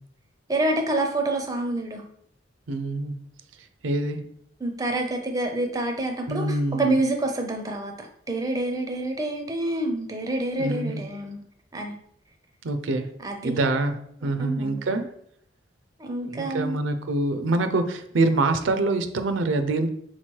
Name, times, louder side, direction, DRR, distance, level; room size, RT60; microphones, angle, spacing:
voice 1, 0.5-2.0 4.6-11.4 11.7-11.9 13.2-13.6 14.4-14.8 16.0-16.8, right 2 dB, 20° right, 3 dB, 0.4 m, -27 dB
voice 2, 2.7-3.1 3.8-4.2 6.3-7.0 10.6-11.0 12.6-13.1 13.4-15.1 16.2-19.9, right 2 dB, 75° right, 9 dB, 0.5 m, -25 dB
3.8 x 3.0 x 4.4 m, 0.68 s
head